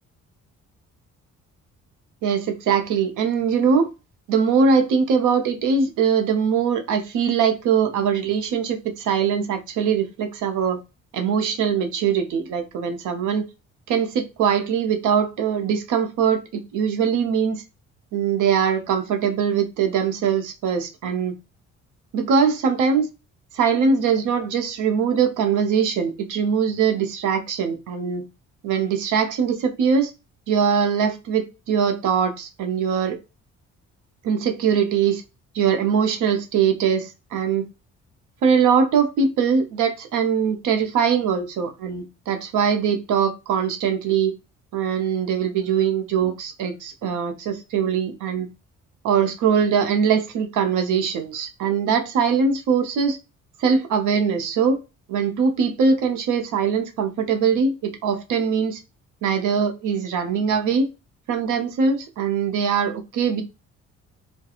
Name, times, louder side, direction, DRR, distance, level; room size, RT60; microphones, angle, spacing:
voice 1, 2.2-3.9 4.3-10.8 11.1-13.5 13.9-17.6 18.1-21.3 22.1-23.1 23.5-28.2 28.6-30.1 30.5-33.2 34.2-35.2 35.5-37.7 38.4-44.3 44.7-48.5 49.0-53.2 53.6-54.8 55.1-58.8 59.2-60.9 61.3-63.4, right 6 dB, 80° right, 0.7 m, -22 dB
2.4 x 2.2 x 2.8 m
cardioid pair, 90°, 30 cm